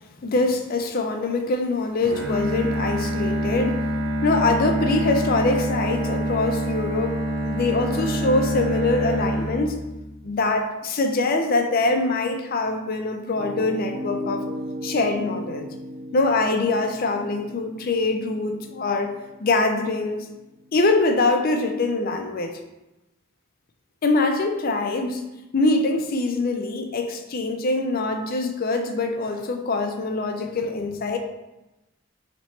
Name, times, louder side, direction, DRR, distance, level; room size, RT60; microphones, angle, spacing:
voice 1, 0.2-3.9 4.2-7.2 7.5-9.8 10.2-14.4 14.8-15.7 16.1-19.1 19.4-20.3 20.7-22.6 24.0-25.3 25.5-31.2, left 3 dB, 45° left, 5 dB, 0.4 m, -23 dB
Bowed string instrument, 2.0-10.2, right 1 dB, 55° right, 0.8 m, -26 dB
Piano, 13.4-21.2, equal, 70° right, 1.2 m, -37 dB
4.1 x 2.9 x 3.2 m, 1.0 s
head